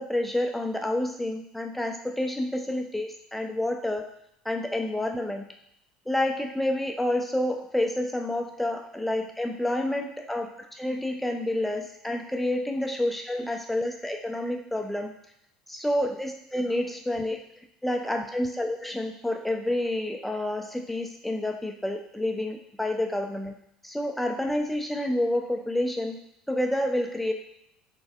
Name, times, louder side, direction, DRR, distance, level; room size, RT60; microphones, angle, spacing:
voice 1, 0.0-4.1 4.5-5.5 6.1-10.5 10.8-15.1 15.7-17.4 17.8-23.5 23.8-26.2 26.5-27.3, left 1 dB, 5° left, 3 dB, 0.5 m, -29 dB
4.0 x 3.3 x 2.4 m, 0.74 s
figure-of-eight pair, 65°, 3 cm